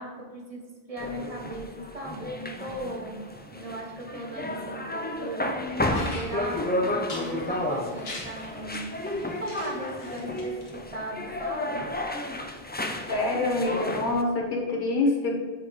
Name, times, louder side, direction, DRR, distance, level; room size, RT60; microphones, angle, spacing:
voice 1, 0.0-11.9, right 1 dB, 35° right, 0 dB, 1.2 m, -37 dB
sound 1, 1.0-14.2, left 1 dB, 15° left, 0.3 m, -32 dB
sound 2, 5.9-10.7, left 2 dB, 75° left, 1.4 m, -43 dB
voice 2, 13.1-15.4, left 2 dB, 55° left, -2 dB, 1.4 m, -25 dB
7.8 x 3.4 x 5.1 m, 1.4 s
omnidirectional pair, 1.0 m